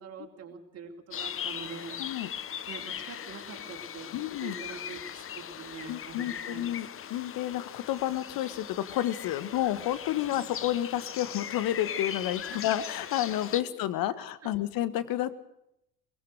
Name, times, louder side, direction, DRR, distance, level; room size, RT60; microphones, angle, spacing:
voice 1, 0.0-2.3 2.7-4.1 4.4-6.7 7.0-7.1 12.5-12.6 14.4-14.5, right 5 dB, 30° right, 2 dB, 4.2 m, -44 dB
sound 1, 1.1-13.6, left 9 dB, 30° left, 1.1 m, -39 dB
voice 2, 2.0-2.3 4.1-4.5 5.9-15.3, left 13 dB, 45° left, 14 dB, 1.7 m, -30 dB
23.0 x 21.5 x 6.5 m, 0.80 s
figure-of-eight pair, 70°, 46 cm